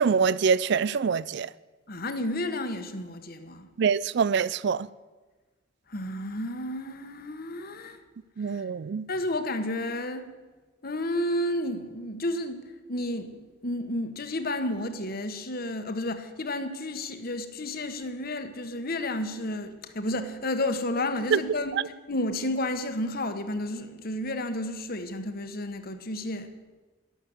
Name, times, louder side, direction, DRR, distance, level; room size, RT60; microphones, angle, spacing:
voice 1, 0.0-1.5 3.8-4.9 8.4-9.1 21.3-21.4, right 6 dB, 60° right, 0.4 m, -24 dB
voice 2, 1.9-3.7 5.9-8.0 8.4-8.6 9.1-10.3 10.8-21.8 22.1-26.5, left 1 dB, 50° left, 1.3 m, -31 dB
12.0 x 12.0 x 8.0 m
head